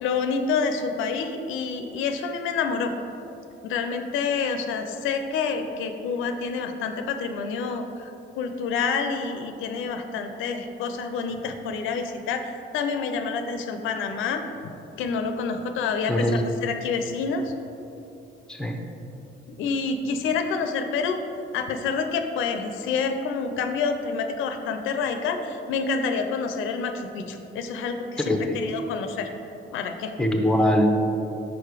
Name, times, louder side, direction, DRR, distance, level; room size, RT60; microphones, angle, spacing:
voice 1, 0.0-2.9 3.6-8.1 8.4-14.4 15.0-17.5 19.5-21.2 21.5-29.3 29.7-30.1, left 5 dB, 90° left, 6 dB, 0.5 m, -28 dB
voice 2, 16.1-16.4 18.5-18.8 28.2-28.4 30.2-30.9, equal, 5° left, 3 dB, 0.7 m, -22 dB
5.1 x 4.8 x 4.7 m, 2.8 s
cardioid pair, 90°, 20 cm